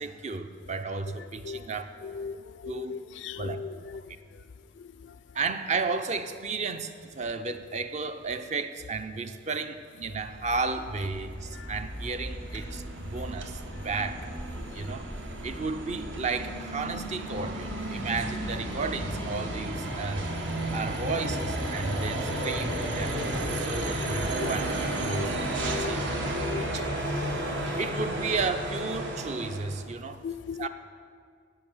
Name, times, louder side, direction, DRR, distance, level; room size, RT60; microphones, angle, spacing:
voice 1, 0.0-1.9 2.7-3.0 3.4-3.7 3.9-4.0 5.3-14.3 14.7-15.1 15.4-20.3 20.7-23.2 23.5-26.8 27.8-30.2 30.6-30.7, right 4 dB, 35° right, 9 dB, 0.5 m, -33 dB
voice 2, 2.0-2.4 2.6-3.7 24.4-24.5 25.1-25.3 25.6-26.0 26.3-26.7 30.2-30.7, left 6 dB, 65° left, 15 dB, 0.3 m, -36 dB
sound 1, 10.0-29.8, right 1 dB, 70° right, 1.5 m, -33 dB
16.0 x 5.6 x 6.2 m, 2.1 s
head